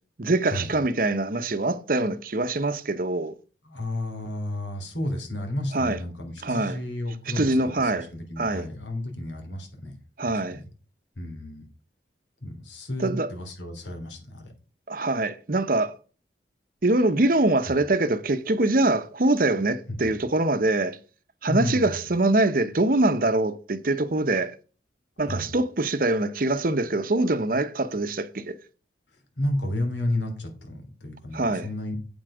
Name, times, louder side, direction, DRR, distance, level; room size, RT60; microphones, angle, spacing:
voice 1, 0.2-3.3 5.7-6.0 6.4-6.8 7.4-8.1 8.4-8.7 10.2-10.6 13.0-13.3 14.9-15.9 16.8-21.0 21.4-24.5 25.2-28.5 31.3-31.7, right 2 dB, 50° right, 0.8 m, -24 dB
voice 2, 3.6-10.0 10.2-10.7 11.1-11.6 12.4-14.5 17.7-17.8 19.9-20.2 21.5-22.0 25.2-25.5 29.1-32.0, left 1 dB, 85° left, 3.2 m, -32 dB
8.8 x 7.7 x 5.0 m
head